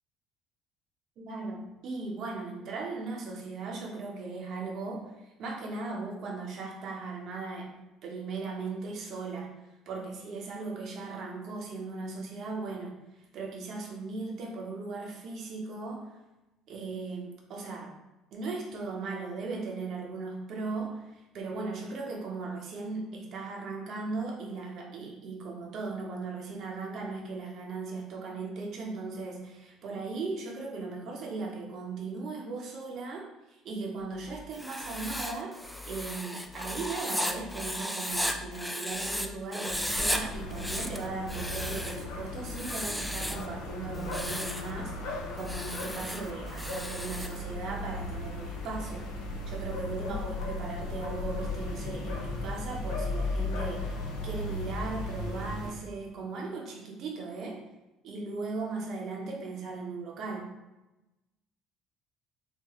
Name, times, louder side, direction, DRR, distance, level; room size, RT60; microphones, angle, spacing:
voice 1, 1.2-7.7 8.0-9.5 9.9-13.0 13.3-16.2 16.7-17.9 18.3-35.5 35.9-49.0 49.5-57.6 58.0-60.5, right 3 dB, 60° right, 0 dB, 0.8 m, -38 dB
sound 1, 34.0-34.4 34.8-35.2 35.6-36.0 36.4-36.9 37.3-37.7 38.1-38.5 38.9-39.3 39.7-40.2 40.5-41.0 41.4-41.8 42.2-42.6 43.0-43.4 43.8-44.3 44.6-45.1 45.4-45.9 46.3-46.7 47.1-47.5 47.9-48.4 48.7-49.2 49.6-49.7 50.0-50.1 50.4-50.5 50.8-50.9 51.2-51.3 51.6-51.7 52.0-52.1 52.4-52.5 52.8-52.9 53.2-53.3, left 4 dB, 25° left, 0.8 m, -48 dB
Writing, 34.5-39.3 39.5-40.2 40.5-42.0 42.5-43.5 44.0-44.7 45.4-47.4, equal, 5° left, 0.4 m, -35 dB
sound 2, 39.6-55.7, left 2 dB, 80° left, 0.5 m, -36 dB
3.9 x 2.1 x 3.1 m, 1.0 s
hypercardioid pair, 65°, 0 cm